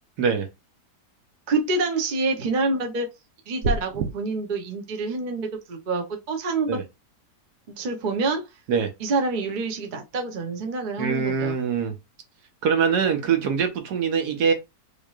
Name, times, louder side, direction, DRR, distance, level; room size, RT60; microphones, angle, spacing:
voice 1, 1.5-3.1 3.5-6.8 7.7-8.4 9.0-11.6, right 3 dB, 45° right, 0.6 m, -27 dB
sound 1, 3.6-4.1, right 2 dB, 90° right, 1.3 m, -25 dB
voice 2, 11.0-11.9 12.6-14.5, right 6 dB, 70° right, 1.4 m, -23 dB
3.7 x 3.6 x 2.4 m
omnidirectional pair, 1.8 m